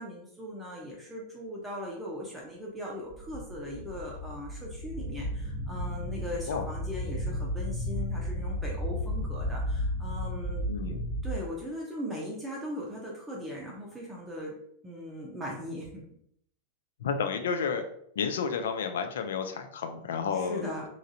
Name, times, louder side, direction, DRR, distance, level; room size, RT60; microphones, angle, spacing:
voice 1, 0.0-14.6 14.8-16.0 20.3-20.9, equal, 10° right, -3 dB, 0.6 m, -39 dB
sound 1, 3.1-11.4, equal, 40° left, 1.1 m, -33 dB
voice 2, 10.7-11.1 17.0-17.8 18.2-20.7, left 6 dB, 60° left, 7 dB, 0.3 m, -31 dB
3.0 x 2.4 x 2.7 m, 0.69 s
figure-of-eight pair, 90°, 0 cm